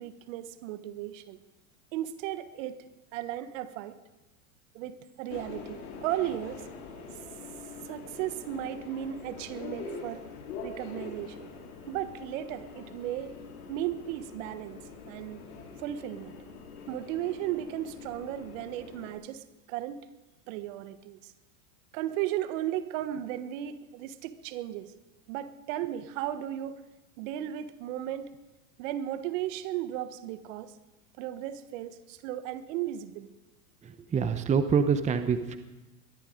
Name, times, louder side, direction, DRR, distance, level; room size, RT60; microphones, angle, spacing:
voice 1, 0.0-1.4 1.9-2.8 3.1-4.0 4.7-6.7 7.8-10.3 10.6-11.5 11.9-13.3 13.7-14.8 15.1-15.4 15.8-16.4 16.9-20.0 20.5-21.3 21.9-24.9 25.3-26.8 27.2-28.3 28.8-30.7 31.2-33.3, right 12 dB, 60° right, 12 dB, 1.4 m, -35 dB
Subway metro underground, 5.3-19.1, left 4 dB, 75° left, 3.8 m, -44 dB
voice 2, 33.8-35.6, right 6 dB, 15° right, 10 dB, 0.9 m, -26 dB
21.5 x 13.0 x 5.2 m, 1.0 s
supercardioid pair, 125°, 44 cm